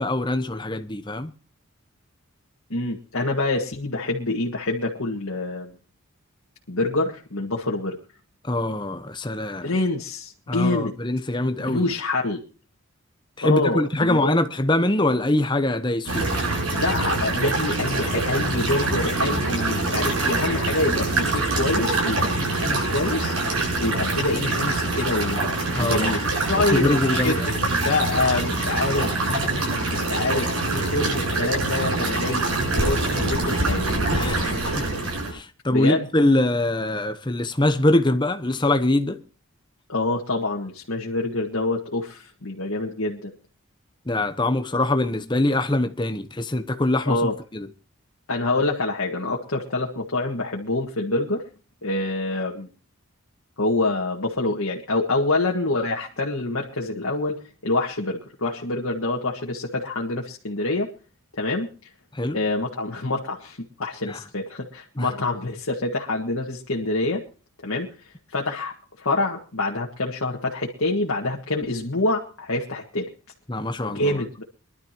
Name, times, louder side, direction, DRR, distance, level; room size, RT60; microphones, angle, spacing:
voice 1, 0.0-1.3 8.4-9.7 10.5-11.9 13.4-16.3 25.7-26.2 26.7-27.6 34.1-34.9 35.3-39.2 44.1-47.2 47.5-47.7 62.1-62.4 64.1-64.2 65.0-65.1 73.5-74.2, left 1 dB, 20° left, 0.9 m, -23 dB
voice 2, 2.7-5.7 6.7-8.0 9.6-10.9 11.6-12.4 13.4-14.4 16.7-23.3 23.8-25.4 25.8-33.9 35.7-36.1 39.9-43.3 47.1-47.3 48.3-51.4 51.8-52.7 53.6-60.9 61.4-61.7 62.3-67.2 67.6-67.9 68.3-73.1 73.9-74.4, left 2 dB, 85° left, 1.8 m, -26 dB
sound 1, 16.1-35.3, right 2 dB, 85° right, 7.7 m, -24 dB
23.5 x 12.0 x 3.0 m
head